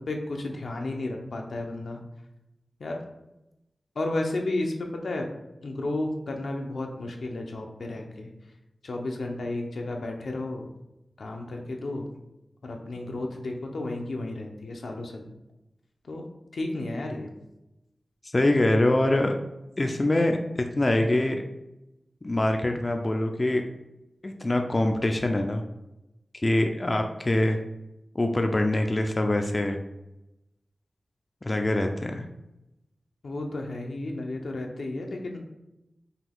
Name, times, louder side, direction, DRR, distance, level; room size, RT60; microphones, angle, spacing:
voice 1, 0.0-2.0 2.8-3.0 4.0-5.3 5.6-8.3 8.8-10.7 11.2-12.1 12.6-15.3 16.0-16.2 16.5-17.3 33.2-35.4, left 2 dB, 80° left, 1 dB, 0.7 m, -32 dB
voice 2, 18.3-19.3 19.8-21.4 22.2-23.6 24.2-25.6 26.4-27.6 28.1-29.8 31.4-32.3, left 1 dB, 35° left, 4 dB, 0.4 m, -24 dB
5.8 x 2.3 x 3.5 m, 0.92 s
wide cardioid pair, 60°, 0 cm